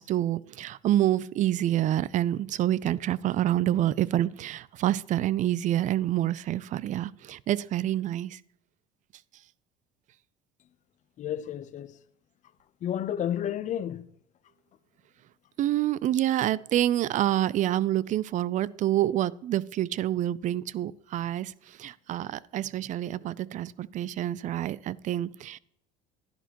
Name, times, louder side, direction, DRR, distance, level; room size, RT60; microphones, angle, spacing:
voice 1, 0.0-8.4 15.6-25.6, right 13 dB, 45° right, 0.4 m, -27 dB
voice 2, 11.2-12.0 12.8-14.0, left 10 dB, 45° left, 0.7 m, -31 dB
11.5 x 11.0 x 3.0 m
supercardioid pair, 100°, 18 cm